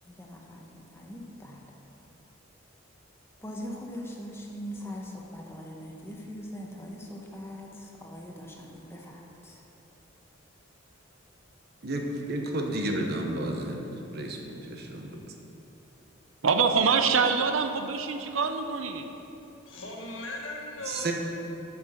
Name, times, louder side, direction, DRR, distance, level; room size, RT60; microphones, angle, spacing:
voice 1, 0.0-1.7 3.4-9.6, equal, 10° left, -1 dB, 1.0 m, -41 dB
voice 2, 11.8-13.9 14.1-15.1 20.9-21.1, right 1 dB, 50° right, 2 dB, 1.0 m, -31 dB
voice 3, 16.4-19.1, right 5 dB, 75° right, 7 dB, 0.6 m, -25 dB
voice 4, 19.6-21.1, left 2 dB, 75° left, -1 dB, 1.5 m, -38 dB
8.9 x 6.0 x 6.5 m, 2.9 s
head